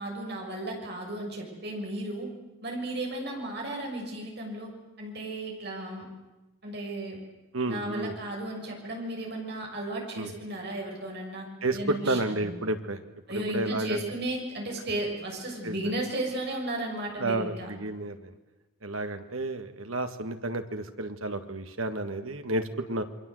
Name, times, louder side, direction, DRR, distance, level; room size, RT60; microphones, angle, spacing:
voice 1, 0.0-2.3 2.6-4.7 5.0-6.0 6.6-7.2 7.7-11.5 11.7-12.6 13.3-17.7, right 1 dB, 50° right, 0 dB, 6.7 m, -34 dB
voice 2, 7.5-8.2 10.2-10.3 11.6-13.0 13.3-14.0 15.6-15.8 17.2-18.3 18.8-22.6 22.9-23.0, right 2 dB, 80° right, 7 dB, 2.0 m, -31 dB
28.0 x 23.0 x 8.0 m, 1.1 s
head